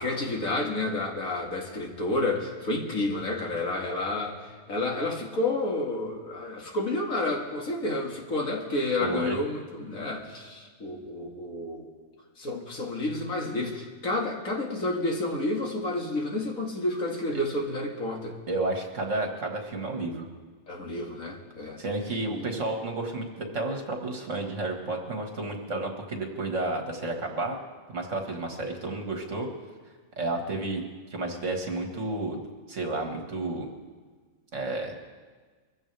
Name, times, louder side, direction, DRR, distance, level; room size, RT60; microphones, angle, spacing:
voice 1, 0.0-4.4 4.7-11.9 12.4-18.4 20.7-21.8 22.3-22.5, left 2 dB, 80° left, 0 dB, 2.5 m, -30 dB
voice 2, 9.0-9.4 17.3-17.4 18.5-20.3 21.8-27.6 27.9-29.5 30.2-30.8 31.1-32.4 32.7-33.7 34.5-34.9, right 2 dB, 60° right, 2 dB, 2.1 m, -31 dB
23.5 x 15.0 x 3.4 m, 1.5 s
omnidirectional pair, 1.4 m